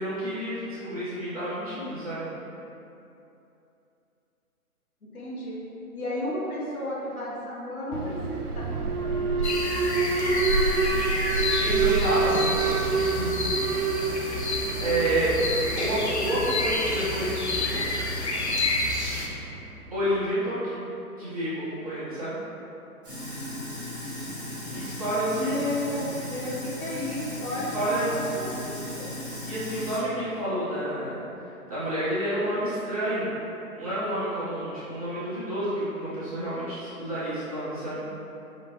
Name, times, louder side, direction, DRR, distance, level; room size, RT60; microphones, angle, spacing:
voice 1, 0.0-2.3 11.2-13.4 14.3-15.3 15.8-17.9 19.9-20.8 21.2-22.4 24.7-25.5 27.5-28.3 29.4-31.2 31.7-33.4 33.7-38.1, right 1 dB, 25° right, -13 dB, 0.9 m, -29 dB
voice 2, 5.1-5.6 5.9-8.8 9.0-9.7 25.3-27.7 28.0-29.1, left 1 dB, 70° left, -6 dB, 1.3 m, -33 dB
Alarm, 7.9-19.9, right 4 dB, 80° right, 0.6 m, -28 dB
sound 1, 9.4-19.3, left 3 dB, 50° left, 0.5 m, -30 dB
Sink (filling or washing), 23.0-30.0, left 1 dB, 10° right, 1.3 m, -36 dB
5.4 x 2.8 x 3.0 m, 2.8 s
hypercardioid pair, 165°, 45 cm